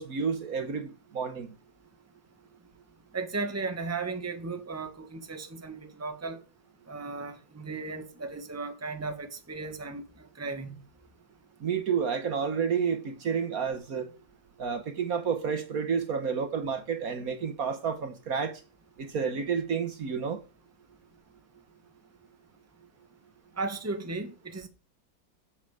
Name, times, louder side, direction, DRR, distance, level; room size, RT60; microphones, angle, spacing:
voice 1, 0.0-1.5 11.6-14.1 14.6-18.6 19.0-20.4, right 6 dB, 55° right, 1.6 m, -30 dB
voice 2, 3.1-6.4 6.9-10.8 23.6-24.7, right 3 dB, 10° right, 1.4 m, -36 dB
15.0 x 7.7 x 4.9 m
omnidirectional pair, 1.9 m